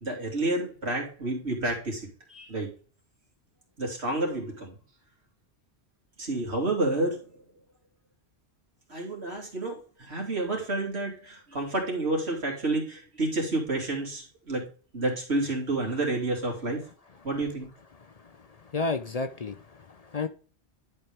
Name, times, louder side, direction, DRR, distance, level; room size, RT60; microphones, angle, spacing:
voice 1, 0.0-2.7 3.8-4.7 6.2-7.4 8.9-14.7 14.9-16.8 17.2-17.7, right 2 dB, 90° right, 0 dB, 3.1 m, -30 dB
voice 2, 18.7-20.3, left 3 dB, 45° left, 8 dB, 0.6 m, -31 dB
11.0 x 4.5 x 3.5 m, 0.38 s
omnidirectional pair, 1.1 m